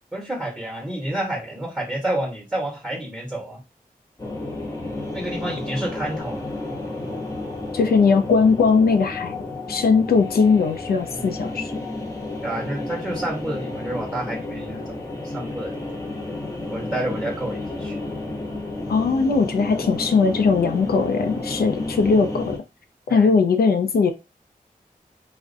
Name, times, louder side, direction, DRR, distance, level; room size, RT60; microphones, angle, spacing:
voice 1, 0.1-3.6 5.1-6.4 12.4-15.0 15.2-15.8 16.7-18.0 23.1-23.3, right 1 dB, 5° right, 0.9 m, -29 dB
sound 1, 4.2-22.6, left 2 dB, 20° left, 0.8 m, -31 dB
voice 2, 7.7-9.4 9.7-11.7 18.9-22.6 23.1-24.1, left 5 dB, 85° left, 0.4 m, -19 dB
2.3 x 2.1 x 2.5 m
wide cardioid pair, 65°, 15 cm